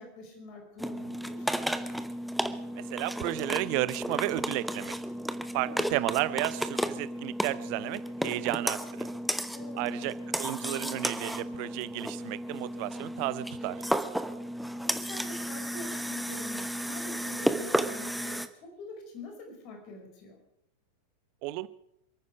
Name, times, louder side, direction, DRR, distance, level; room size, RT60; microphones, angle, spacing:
voice 1, 0.0-1.5 5.5-5.8 9.5-10.0 14.8-20.4, left 3 dB, 40° left, 3 dB, 5.0 m, -45 dB
sound 1, 0.8-18.5, equal, ahead, 0.9 m, -33 dB
voice 2, 2.8-4.9 5.5-9.1 9.8-13.8 21.4-21.7, right 18 dB, 45° right, 17 dB, 0.7 m, -33 dB
27.5 x 9.6 x 5.0 m, 0.78 s
figure-of-eight pair, 90°, 0 cm